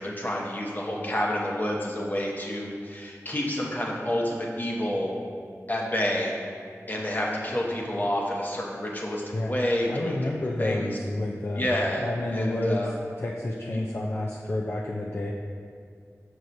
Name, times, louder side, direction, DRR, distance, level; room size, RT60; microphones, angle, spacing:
voice 1, 0.0-5.1 5.7-6.3 6.9-10.3 10.6-11.0 11.6-12.1 12.3-12.9 13.7-13.8, left 1 dB, 35° left, -2 dB, 1.0 m, -29 dB
voice 2, 9.9-11.7 12.0-12.9 13.2-15.3, left 1 dB, 50° left, -2 dB, 0.4 m, -29 dB
6.2 x 6.0 x 2.7 m, 2.3 s
wide cardioid pair, 60°, 6 cm